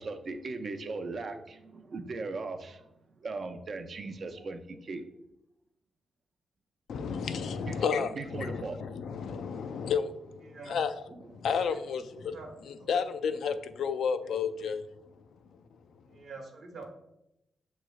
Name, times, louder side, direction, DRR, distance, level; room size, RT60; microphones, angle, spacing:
voice 1, 0.0-2.8 3.2-5.1 7.0-7.1 7.7-9.2, right 3 dB, 45° right, 0.4 m, -38 dB
voice 2, 6.9-10.9 11.3-12.4 12.7-14.8, left 6 dB, 80° left, 0.3 m, -32 dB
voice 3, 10.4-10.8 11.7-11.8 12.1-12.5 12.8-13.0 14.2-14.3 16.1-16.9, right 4 dB, 65° right, 1.0 m, -46 dB
7.3 x 3.1 x 2.3 m
wide cardioid pair, 145°, 0 cm